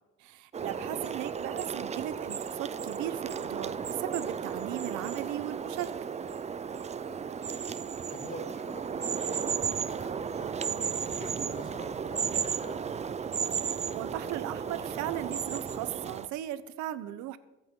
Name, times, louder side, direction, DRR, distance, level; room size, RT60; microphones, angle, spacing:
voice 1, 0.2-5.9 13.7-17.4, right 13 dB, 70° right, 14 dB, 1.0 m, -37 dB
sound 1, 0.5-16.3, right 6 dB, 20° right, 0.5 m, -34 dB
voice 2, 0.7-1.0 6.9-7.3 8.1-13.0, left 3 dB, 25° left, 4 dB, 2.2 m, -48 dB
23.0 x 8.6 x 3.8 m, 1.0 s
cardioid pair, 110°, 30 cm